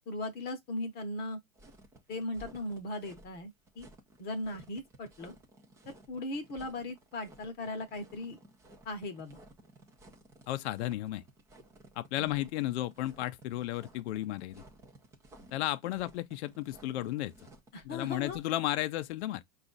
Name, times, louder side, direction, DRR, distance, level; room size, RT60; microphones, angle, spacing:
voice 1, 0.1-1.4 2.1-3.9 4.2-5.3 5.9-8.4 8.8-9.4 12.2-12.3 17.7-18.4, left 2 dB, 25° left, 0.8 m, -38 dB
sound 1, 1.6-18.6, right 2 dB, 10° right, 0.4 m, -56 dB
voice 2, 10.5-11.2 12.0-14.6 15.5-17.3 17.8-19.4, left 15 dB, 55° left, 0.5 m, -33 dB
4.8 x 2.4 x 3.7 m
hypercardioid pair, 130°, 41 cm